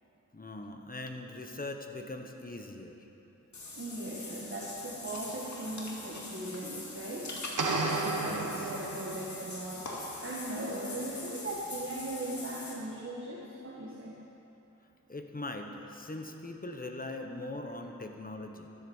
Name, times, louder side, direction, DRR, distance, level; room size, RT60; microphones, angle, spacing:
voice 1, 0.3-3.0 8.2-8.7 15.1-18.7, left 2 dB, 30° left, 4 dB, 1.3 m, -41 dB
Water / Bathtub (filling or washing), 3.5-12.7, left 2 dB, 65° left, 2.4 m, -43 dB
voice 2, 3.7-7.4 7.9-14.1, right 1 dB, 40° right, -3 dB, 1.7 m, -39 dB
sound 1, 7.6-9.5, right 3 dB, 80° right, 1.5 m, -32 dB
13.5 x 10.0 x 7.3 m, 3.0 s
wide cardioid pair, 80°, 31 cm